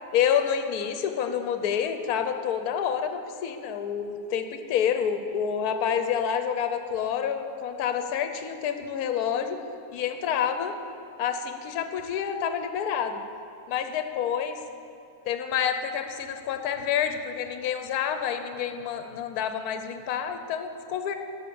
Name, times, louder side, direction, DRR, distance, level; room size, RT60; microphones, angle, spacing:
voice 1, 0.1-9.6 9.9-10.7 11.2-13.2 13.7-14.6 15.3-21.1, left 8 dB, 65° left, 7 dB, 1.1 m, -28 dB
12.5 x 6.4 x 7.0 m, 2.6 s
omnidirectional pair, 2.0 m